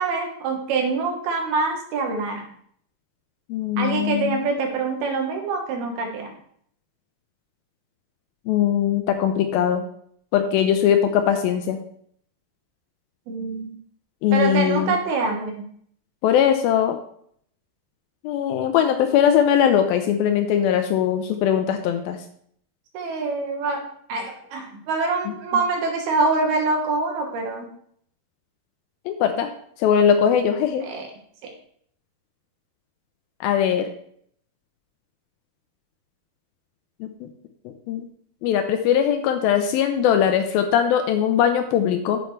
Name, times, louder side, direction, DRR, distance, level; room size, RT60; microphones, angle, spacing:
voice 1, 0.0-2.4 3.8-6.3 13.3-13.7 14.3-15.7 22.9-23.8 24.1-27.7 30.9-31.0 31.4-31.5, right 4 dB, 75° right, 2 dB, 3.2 m, -25 dB
voice 2, 3.5-4.4 8.5-9.8 10.3-11.8 14.2-14.9 16.2-17.0 18.2-22.2 25.3-25.6 29.1-29.5 29.8-30.9 33.4-33.9 37.0-37.3 37.9-38.1 38.4-42.2, left 9 dB, 80° left, 6 dB, 2.2 m, -20 dB
8.6 x 7.9 x 3.2 m, 0.64 s
omnidirectional pair, 4.6 m